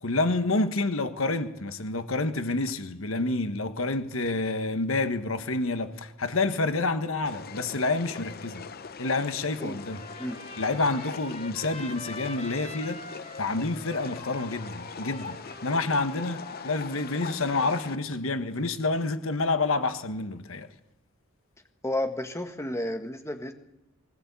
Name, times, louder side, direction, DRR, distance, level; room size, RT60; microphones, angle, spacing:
voice 1, 0.0-8.6 9.0-10.0 10.6-13.0 13.4-20.7, left 3 dB, 70° left, 1.4 m, -28 dB
sound 1, 7.2-18.0, left 5 dB, 45° left, 0.8 m, -42 dB
Trumpet, 9.8-17.4, left 2 dB, 30° left, 1.8 m, -45 dB
voice 2, 21.8-23.5, left 1 dB, 15° left, 1.7 m, -31 dB
20.5 x 19.0 x 8.3 m
head